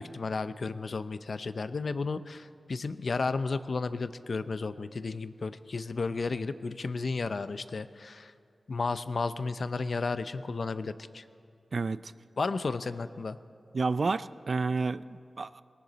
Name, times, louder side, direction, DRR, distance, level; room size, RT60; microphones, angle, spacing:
voice 1, 0.0-8.3 8.7-11.2 12.4-13.4, left 4 dB, 65° left, 13 dB, 0.5 m, -33 dB
voice 2, 11.7-12.1 13.7-15.6, right 4 dB, 60° right, 16 dB, 0.3 m, -30 dB
19.5 x 18.0 x 4.0 m, 2.4 s
wide cardioid pair, 65°, 0 cm